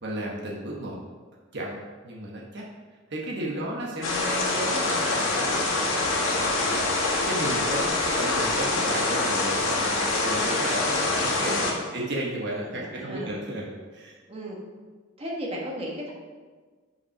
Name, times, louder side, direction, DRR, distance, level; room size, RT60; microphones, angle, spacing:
voice 1, 0.0-1.0 1.5-2.7 3.1-11.7 11.9-14.2, right 1 dB, 60° right, -3 dB, 1.2 m, -34 dB
sound 1, 4.0-11.7, left 2 dB, 85° left, 1.8 m, -25 dB
voice 2, 11.3-11.9 12.7-13.3 14.3-14.6 15.2-16.1, equal, 30° right, -3 dB, 1.4 m, -36 dB
6.4 x 5.6 x 5.4 m, 1.4 s
head